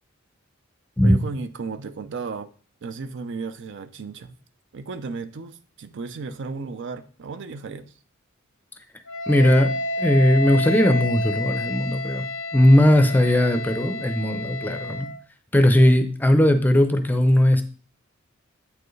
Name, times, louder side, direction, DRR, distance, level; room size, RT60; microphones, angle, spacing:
voice 1, 1.0-2.5 2.8-4.4 4.7-7.9, right 4 dB, 60° right, 0.5 m, -34 dB
Wind instrument woodwind instrument, 9.1-15.2, left 2 dB, 70° left, 0.5 m, -30 dB
voice 2, 9.3-12.2 12.5-15.1 15.5-17.6, left 1 dB, 10° left, 0.5 m, -18 dB
8.4 x 4.6 x 3.2 m
head